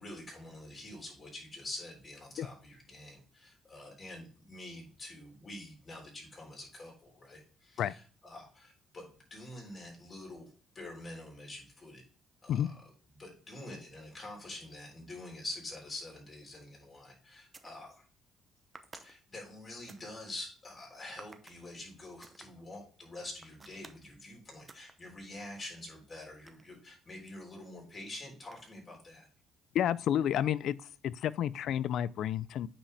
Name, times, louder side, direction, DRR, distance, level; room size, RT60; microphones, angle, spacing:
voice 1, 0.0-8.0 8.2-12.0 12.4-12.8 13.1-18.0 19.0-29.3, left 1 dB, 35° left, 3.8 m, -46 dB
sound 1, 17.5-17.8 18.7-20.1 21.2-21.6 22.2-22.5 23.4-24.1 24.7-24.9 25.4-27.2 28.4-28.9, right 3 dB, 25° right, 0.8 m, -54 dB
voice 2, 29.7-32.7, left 10 dB, 70° left, 0.3 m, -31 dB
8.6 x 5.0 x 3.4 m
cardioid pair, 95°, 0 cm